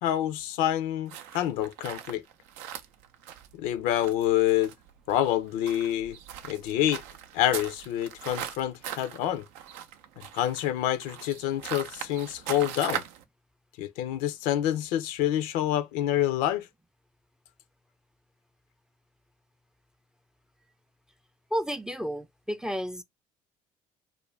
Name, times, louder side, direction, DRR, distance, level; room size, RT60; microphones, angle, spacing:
voice 1, 0.0-2.2 3.6-4.7 5.1-6.2 6.4-7.0 7.3-9.4 10.2-13.0 13.8-16.7, left 12 dB, 80° left, 0.4 m, -27 dB
sound 1, 1.1-13.2, right 10 dB, 85° right, 0.4 m, -40 dB
voice 2, 21.5-23.0, equal, 5° right, 0.3 m, -31 dB
2.4 x 2.1 x 3.1 m
supercardioid pair, 70°, 15 cm